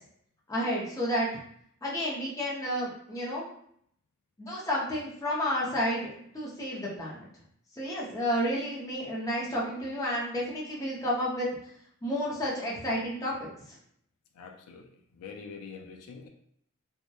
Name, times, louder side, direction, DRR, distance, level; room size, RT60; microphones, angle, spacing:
voice 1, 0.5-1.3 1.8-3.4 4.4-7.3 7.7-11.5 12.0-13.5, equal, 15° left, -5 dB, 0.5 m, -31 dB
voice 2, 14.3-16.3, left 5 dB, 75° left, 4 dB, 0.3 m, -45 dB
2.6 x 2.1 x 2.2 m, 0.68 s
head